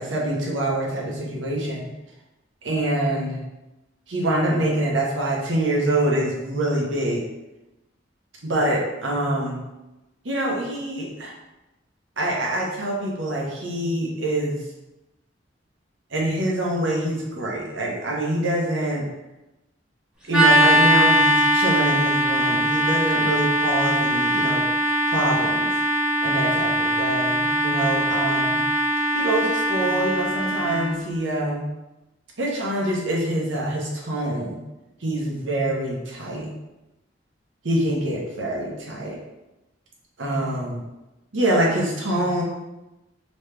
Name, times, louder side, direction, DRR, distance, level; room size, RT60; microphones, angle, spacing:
voice 1, 0.0-1.9 2.6-3.4 4.1-7.2 8.4-9.6 10.2-11.3 12.2-14.6 16.1-19.1 20.3-24.6 25.1-25.7 26.2-28.6 29.1-31.7 32.4-34.6 35.0-36.5 37.6-39.2 40.2-40.8 41.3-42.4, right 1 dB, 85° right, -3 dB, 1.0 m, -25 dB
sound 1, 20.3-30.9, right 1 dB, 5° right, 0.8 m, -21 dB
3.2 x 3.1 x 3.3 m, 0.99 s
head